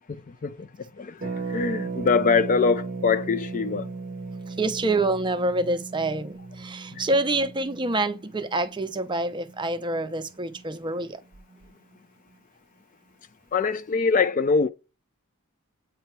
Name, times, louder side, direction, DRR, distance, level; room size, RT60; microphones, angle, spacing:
voice 1, 0.1-3.9 6.9-7.1 13.5-14.7, left 4 dB, 35° left, 0.3 m, -24 dB
Harp, 1.2-10.8 11.1-11.2 11.3-11.7, right 4 dB, 35° right, 0.9 m, -37 dB
voice 2, 4.6-11.2, right 2 dB, 20° right, 0.5 m, -27 dB
8.2 x 2.9 x 4.4 m
head